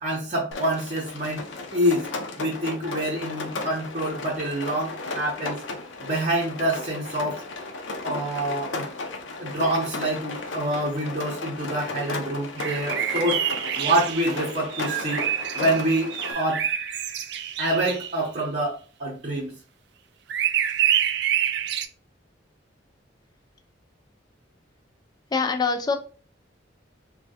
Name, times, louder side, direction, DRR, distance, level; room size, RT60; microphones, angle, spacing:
voice 1, 0.0-1.4 1.7-2.1 2.4-5.6 6.0-7.4 8.0-8.9 9.4-13.4 13.8-15.2 15.5-16.6 17.6-19.5, right 1 dB, 40° right, -4 dB, 0.7 m, -26 dB
Rain, 0.5-16.3, left 3 dB, 85° left, 0.6 m, -35 dB
sound 1, 12.6-18.1 20.3-21.9, right 10 dB, 60° right, 0.3 m, -27 dB
voice 2, 25.3-25.9, left 4 dB, 20° left, 5 dB, 0.3 m, -24 dB
3.3 x 2.2 x 2.7 m, 0.38 s
head